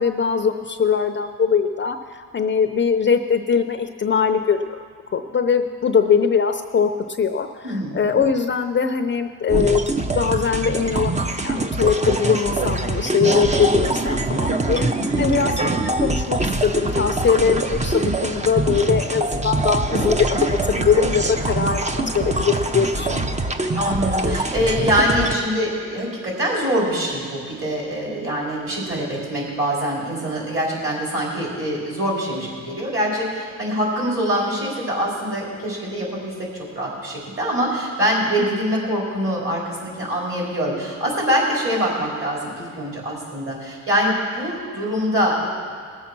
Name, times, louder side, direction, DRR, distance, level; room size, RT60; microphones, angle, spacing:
voice 1, 0.0-4.8 5.1-6.9 7.2-7.5 7.9-9.8 10.1-11.1 11.4-14.9 15.2-23.4 38.4-38.6, left 6 dB, 35° left, 7 dB, 0.6 m, -21 dB
voice 2, 7.6-8.1 15.0-15.3 23.7-45.5, equal, 40° right, -3 dB, 4.6 m, -24 dB
sound 1, 9.5-25.3, right 2 dB, 20° right, 0.7 m, -23 dB
20.0 x 7.3 x 6.0 m, 2.1 s
cardioid pair, 110°, 33 cm